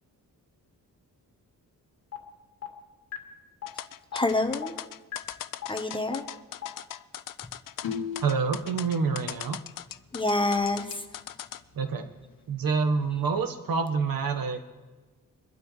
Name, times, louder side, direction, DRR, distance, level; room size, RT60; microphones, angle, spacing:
sound 1, 2.1-2.2 2.6-2.7 3.1-3.2 3.6-3.7 4.1-4.2 4.6-4.7 5.1-5.2 5.6-5.7 6.1-6.2 6.6-6.7, left 12 dB, 45° left, 2.1 m, -35 dB
sound 2, 3.7-11.6, left 12 dB, 70° left, 0.5 m, -39 dB
voice 1, 4.1-4.8 5.7-6.2 10.1-11.1, left 2 dB, 15° left, 5 dB, 1.0 m, -27 dB
sound 3, 7.8-8.6 10.3-10.4 10.6-10.7 11.2-11.3 11.7-11.8 12.6-13.4, left 7 dB, 85° left, 1.2 m, -35 dB
voice 2, 8.2-9.6 11.7-12.1 12.5-14.7, right 5 dB, 80° right, 8 dB, 1.3 m, -27 dB
24.0 x 12.0 x 3.2 m, 1.2 s
wide cardioid pair, 130°, 34 cm